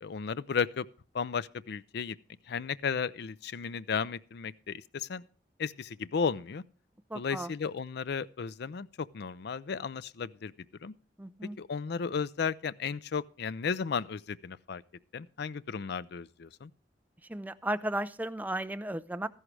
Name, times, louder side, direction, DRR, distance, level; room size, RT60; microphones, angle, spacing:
voice 1, 0.0-0.9 1.1-2.2 2.5-5.2 5.6-6.6 7.1-10.5 10.8-10.9 11.6-14.8 15.1-16.7, left 6 dB, 65° left, 0.5 m, -34 dB
voice 2, 7.1-7.5 11.2-11.6 17.3-19.3, right 1 dB, 10° right, 0.5 m, -34 dB
13.5 x 11.0 x 3.3 m
head